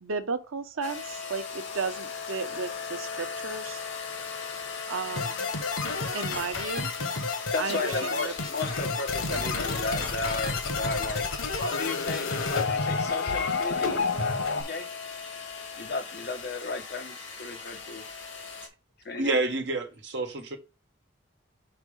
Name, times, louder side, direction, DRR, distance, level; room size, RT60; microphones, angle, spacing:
voice 1, 0.0-3.8 4.9-5.5 6.1-6.9 7.6-8.3 9.3-9.5, right 4 dB, 90° right, 0.8 m, -34 dB
sound 1, 0.8-18.7, left 5 dB, 70° left, 2.6 m, -38 dB
sound 2, 5.2-14.6, left 4 dB, 90° left, 1.3 m, -30 dB
voice 2, 7.5-14.9 15.8-18.1 19.0-19.3, left 3 dB, 50° left, 1.1 m, -34 dB
voice 3, 19.1-20.6, right 2 dB, 60° right, 1.4 m, -28 dB
6.0 x 4.6 x 5.1 m
head